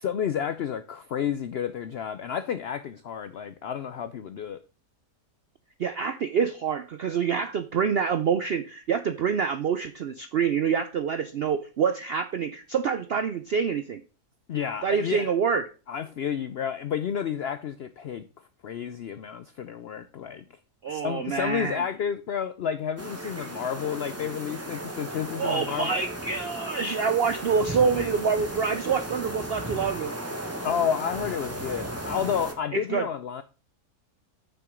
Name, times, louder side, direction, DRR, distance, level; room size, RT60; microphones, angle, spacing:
voice 1, 0.0-4.6 14.5-15.3 15.9-18.3 18.6-20.4 20.9-26.0 30.6-33.4, left 8 dB, 80° left, 0.5 m, -31 dB
voice 2, 5.8-14.0 14.8-15.7 20.8-21.8 25.4-30.1 32.7-33.1, right 6 dB, 75° right, 0.5 m, -26 dB
sound 1, 23.0-32.5, right 1 dB, 10° right, 1.0 m, -36 dB
6.9 x 6.0 x 5.0 m
omnidirectional pair, 1.7 m